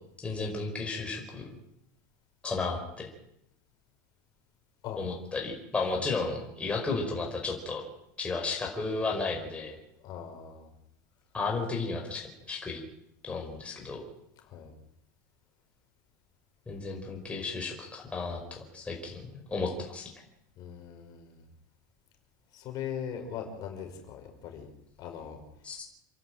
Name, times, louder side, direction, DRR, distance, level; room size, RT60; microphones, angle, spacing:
voice 1, 0.2-1.5 2.4-3.1 5.0-7.9 8.2-9.8 11.3-12.8 13.2-14.0 16.7-20.1 25.6-25.8, left 3 dB, 10° left, 0 dB, 5.1 m, -33 dB
voice 2, 10.0-10.7 14.4-14.7 20.6-21.5 22.5-24.7 25.0-25.4, left 8 dB, 40° left, 3 dB, 5.5 m, -40 dB
29.0 x 11.5 x 9.0 m, 0.77 s
supercardioid pair, 140°, 10 cm